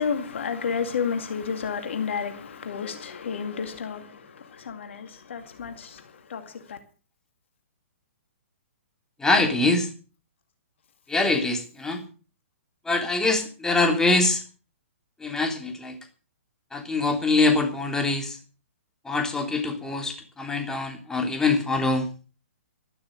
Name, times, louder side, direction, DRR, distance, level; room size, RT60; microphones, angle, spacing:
voice 1, 0.0-6.8, left 6 dB, 60° left, 2.3 m, -31 dB
voice 2, 9.2-9.9 11.1-12.0 12.9-14.4 15.2-15.9 16.7-18.4 19.1-22.1, left 3 dB, 5° left, 3.2 m, -24 dB
13.0 x 12.0 x 6.5 m
figure-of-eight pair, 120°, 7 cm